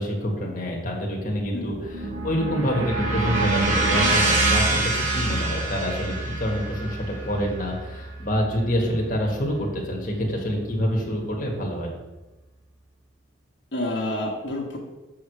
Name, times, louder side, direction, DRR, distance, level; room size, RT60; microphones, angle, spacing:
voice 1, 0.0-11.9, equal, 40° left, -1 dB, 1.5 m, -27 dB
sound 1, 1.5-9.6, right 2 dB, 80° right, 2.0 m, -26 dB
voice 2, 13.7-14.8, left 1 dB, 65° left, -2 dB, 1.3 m, -29 dB
6.9 x 4.8 x 6.7 m, 1.1 s
head